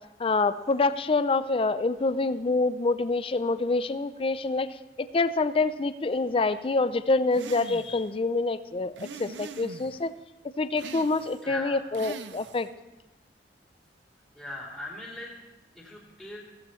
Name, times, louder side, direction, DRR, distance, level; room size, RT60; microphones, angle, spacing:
voice 1, 0.2-10.1 10.6-12.7, left 3 dB, 30° left, 14 dB, 0.4 m, -26 dB
sound 1, 7.3-8.1 9.0-10.0 10.8-11.5 11.9-12.7, right 4 dB, 85° right, 0.6 m, -42 dB
voice 2, 11.4-11.8 14.3-15.4 15.7-16.4, left 2 dB, ahead, -5 dB, 3.2 m, -39 dB
16.0 x 14.5 x 3.1 m, 1.0 s
head